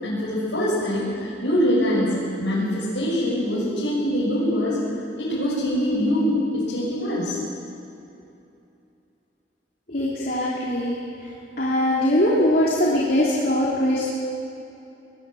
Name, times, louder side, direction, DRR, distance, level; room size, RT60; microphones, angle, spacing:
voice 1, 0.0-4.8 5.2-7.4, equal, 80° left, -7 dB, 6.4 m, -23 dB
voice 2, 9.9-11.0 11.6-14.1, left 1 dB, 55° left, -5 dB, 3.2 m, -21 dB
20.5 x 20.5 x 7.8 m, 2.7 s
head